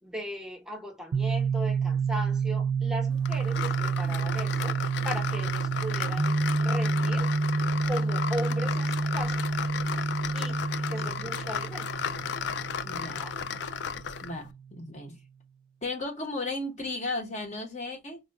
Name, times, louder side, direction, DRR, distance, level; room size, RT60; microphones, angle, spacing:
voice 1, 0.0-4.8 5.0-7.3 7.8-9.4 10.3-10.6 10.9-11.9 13.1-13.3, equal, 5° right, 0.8 m, -38 dB
sound 1, 1.1-14.7, right 4 dB, 80° right, 0.3 m, -29 dB
sound 2, 3.2-14.4, left 7 dB, 60° left, 0.3 m, -34 dB
voice 2, 12.8-13.2 14.2-15.2 15.8-18.2, left 2 dB, 35° left, 1.0 m, -35 dB
4.2 x 2.3 x 2.3 m
head